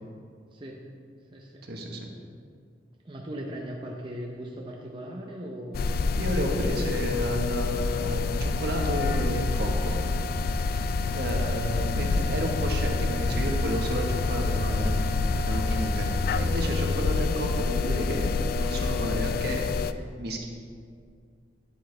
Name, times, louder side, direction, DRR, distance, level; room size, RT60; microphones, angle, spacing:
voice 1, 0.5-0.8 1.3-1.7 3.0-6.0, equal, 25° right, -1 dB, 0.7 m, -38 dB
voice 2, 1.6-2.0 6.2-10.0 10.5-20.4, right 1 dB, 60° right, 1 dB, 1.2 m, -32 dB
sound 1, 5.7-19.9, left 4 dB, 55° left, 0.3 m, -27 dB
sound 2, 8.3-16.7, right 1 dB, 80° right, 0.6 m, -35 dB
10.0 x 8.1 x 3.3 m, 2.2 s
head